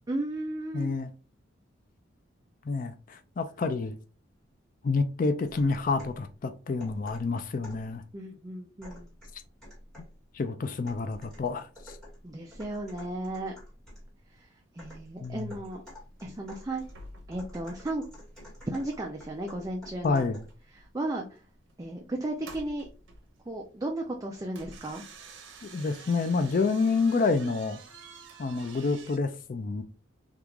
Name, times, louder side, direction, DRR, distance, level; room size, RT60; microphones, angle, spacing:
voice 1, 0.1-0.9 8.1-9.1 12.2-13.5 14.4-14.5 14.7-15.8 16.2-16.8 17.3-18.0 18.7-20.2 20.8-21.4 21.8-22.9 23.5-25.0, right 1 dB, 20° right, 0.4 m, -34 dB
voice 2, 0.7-1.1 2.6-4.0 4.8-8.0 10.3-12.0 15.2-15.5 20.0-20.5 25.6-27.8 28.4-29.8, left 4 dB, 45° left, 0.4 m, -28 dB
sound 1, 5.5-6.3 6.8-7.9 8.8-10.2 10.9-14.1 14.8-20.6, equal, 5° left, 1.5 m, -49 dB
sound 2, 14.3-14.4 14.8-15.1 15.4-15.6 15.8-16.3 16.6-19.4 19.7-19.9 20.3-29.2, right 4 dB, 85° right, 0.8 m, -50 dB
3.5 x 2.4 x 3.0 m
head